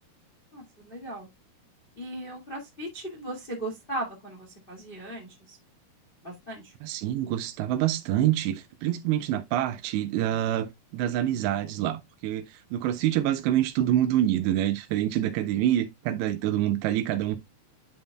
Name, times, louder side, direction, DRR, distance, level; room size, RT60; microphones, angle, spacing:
voice 1, 0.5-1.3 2.0-5.6 6.2-6.7, right 1 dB, 65° left, 0.5 m, -37 dB
voice 2, 6.8-17.4, right 12 dB, 85° right, 2.9 m, -26 dB
10.5 x 5.5 x 2.2 m
omnidirectional pair, 4.9 m